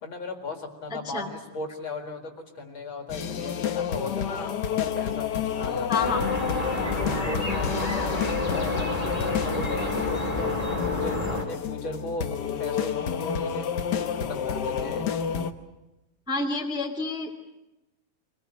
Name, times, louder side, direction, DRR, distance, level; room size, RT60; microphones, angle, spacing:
voice 1, 0.0-6.1 7.0-12.2 12.6-13.6 14.1-15.1, left 3 dB, 45° left, 3 dB, 2.6 m, -37 dB
voice 2, 0.9-1.3 5.9-6.3 7.5-7.6 16.3-17.5, left 3 dB, ahead, 1 dB, 1.9 m, -29 dB
sound 1, 3.1-15.5, left 8 dB, 80° left, 0.9 m, -30 dB
sound 2, 6.0-11.4, left 2 dB, 15° left, 2.0 m, -29 dB
24.0 x 20.0 x 8.9 m, 0.98 s
omnidirectional pair, 3.3 m